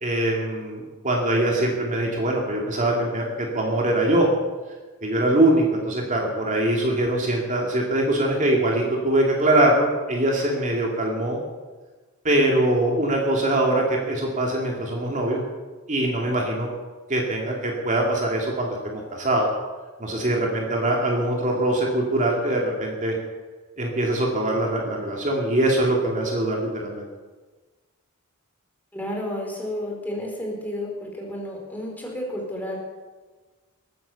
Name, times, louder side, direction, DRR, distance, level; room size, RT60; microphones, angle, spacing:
voice 1, 0.0-4.3 5.0-11.4 12.2-15.4 15.9-16.7 17.1-19.5 20.0-23.2 23.8-27.1, right 1 dB, 35° right, -1 dB, 2.6 m, -23 dB
voice 2, 28.9-32.8, left 1 dB, 10° left, -1 dB, 4.1 m, -31 dB
21.0 x 9.4 x 7.0 m, 1.3 s
head